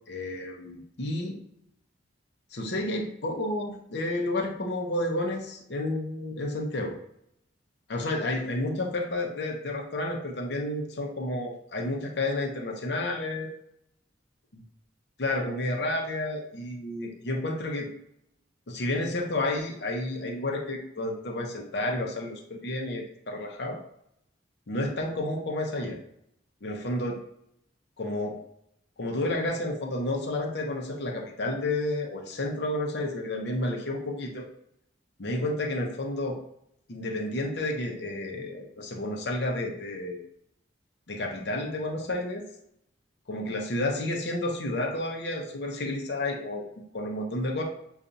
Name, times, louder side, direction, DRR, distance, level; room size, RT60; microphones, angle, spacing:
voice 1, 0.1-1.4 2.5-7.0 7.9-13.5 15.2-17.9 18.7-23.8 24.7-26.0 26.6-27.2 28.0-28.4 29.0-34.5 35.2-36.4 36.9-40.2 41.1-42.5 43.3-46.6 46.9-47.6, left 1 dB, 60° left, 1 dB, 0.7 m, -31 dB
6.7 x 2.4 x 2.6 m, 0.75 s
head